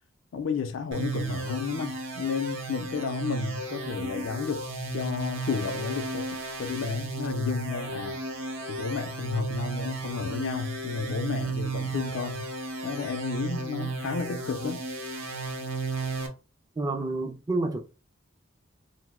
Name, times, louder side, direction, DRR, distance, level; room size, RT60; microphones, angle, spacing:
voice 1, 0.3-4.7 4.9-8.2 8.7-12.5 12.8-14.9, left 6 dB, 75° left, 0.4 m, -32 dB
sound 1, 0.9-16.3, right 3 dB, 70° right, 0.7 m, -34 dB
voice 2, 16.8-17.8, right 2 dB, 20° right, 0.4 m, -29 dB
2.8 x 2.0 x 3.4 m
head